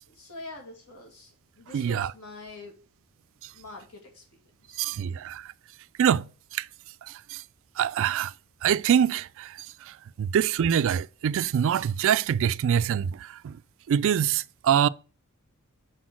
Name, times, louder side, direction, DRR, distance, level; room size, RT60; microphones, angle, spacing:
voice 1, 0.1-2.7 3.5-4.2 4.6-5.3, left 2 dB, 80° left, 2.5 m, -45 dB
voice 2, 1.7-2.1 3.4-3.5 4.8-5.5 6.0-6.7 7.0-7.4 7.8-8.3 8.6-13.6 13.9-14.9, right 8 dB, 60° right, 0.3 m, -25 dB
6.2 x 4.4 x 6.1 m
head